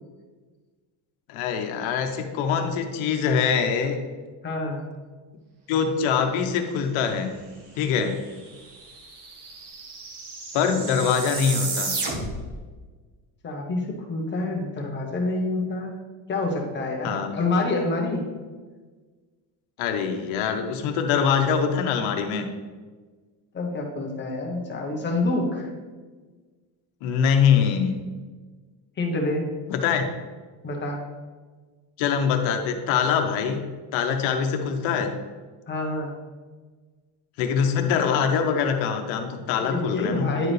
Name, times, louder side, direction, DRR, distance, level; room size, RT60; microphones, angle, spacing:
voice 1, 1.3-4.0 5.7-7.3 7.8-8.2 10.5-12.0 17.0-17.3 19.8-22.5 27.0-28.0 29.7-30.1 32.0-33.6 33.9-35.1 37.4-40.3, left 7 dB, 80° left, 5 dB, 1.1 m, -23 dB
voice 2, 4.4-4.8 13.4-16.0 16.3-18.3 23.5-25.7 29.0-29.5 30.6-31.0 35.7-36.1 39.7-40.5, left 2 dB, 25° left, 0 dB, 1.0 m, -27 dB
sound 1, 8.0-8.1 8.3-12.6, right 3 dB, 60° right, 1.4 m, -33 dB
10.0 x 4.7 x 3.3 m, 1.4 s
cardioid pair, 170°, 47 cm